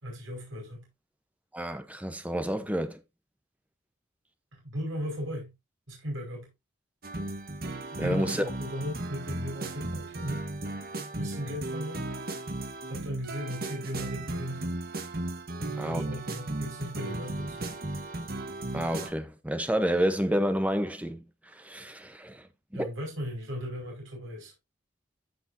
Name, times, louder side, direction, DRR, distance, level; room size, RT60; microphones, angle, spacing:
voice 1, 0.0-0.9 4.5-5.5 5.9-6.5 7.9-10.4 11.1-12.1 12.9-14.7 15.6-17.8 22.7-24.5, equal, 80° right, 5.4 m, -37 dB
voice 2, 1.5-3.0 8.0-8.4 15.8-16.0 18.7-21.2 21.6-22.4 22.7-22.9, equal, 5° right, 0.8 m, -29 dB
sound 1, 7.0-19.1, right 2 dB, 50° right, 1.3 m, -36 dB
14.5 x 5.0 x 2.7 m
head